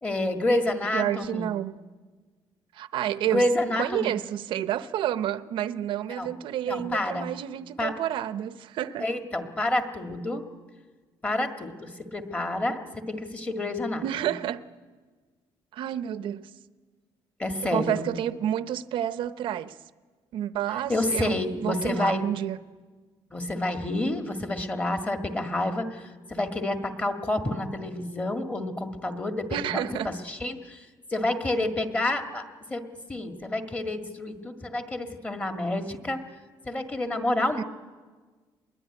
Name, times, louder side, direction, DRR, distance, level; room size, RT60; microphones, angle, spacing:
voice 1, 0.0-1.5 3.3-4.2 6.1-6.3 6.7-7.3 7.8-8.0 9.0-10.5 11.2-14.0 17.4-18.1 20.9-22.3 23.3-30.8 31.1-32.4 32.7-36.2 36.7-37.6, left 1 dB, 15° left, 1.8 m, -29 dB
voice 2, 0.9-1.7 2.7-9.1 14.0-14.6 15.7-16.5 17.6-19.7 20.3-22.6 29.5-30.1 37.6-37.7, right 11 dB, 65° right, 0.8 m, -30 dB
25.5 x 21.5 x 9.8 m
cardioid pair, 160°, 9 cm